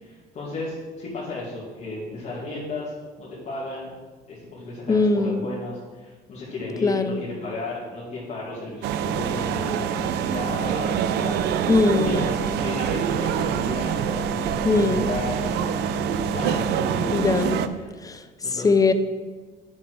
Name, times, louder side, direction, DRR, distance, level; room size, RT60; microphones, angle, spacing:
voice 1, 0.0-2.9 3.2-3.9 4.3-11.5 12.0-17.9 18.4-18.7, left 2 dB, 45° left, -7 dB, 2.3 m, -34 dB
voice 2, 4.9-5.5 6.8-7.2 11.7-12.2 14.6-15.1 17.1-17.7 18.0-18.9, left 3 dB, 20° left, 10 dB, 0.6 m, -21 dB
sound 1, 8.8-17.7, right 8 dB, 80° right, 0.5 m, -25 dB
7.5 x 6.3 x 4.7 m, 1.4 s
cardioid pair, 110°, 17 cm